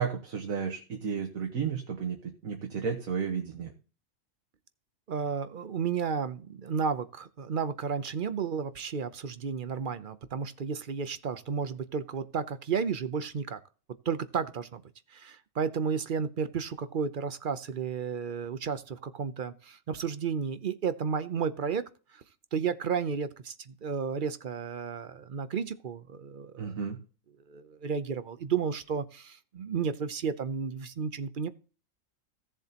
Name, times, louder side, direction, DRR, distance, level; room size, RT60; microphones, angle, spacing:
voice 1, 0.0-3.7 26.6-27.0, right 6 dB, 80° right, 1.8 m, -33 dB
voice 2, 5.1-13.6 14.1-14.8 15.1-22.2 22.5-26.7 27.5-31.5, right 6 dB, 50° right, 0.7 m, -32 dB
16.5 x 7.3 x 2.9 m
omnidirectional pair, 1.4 m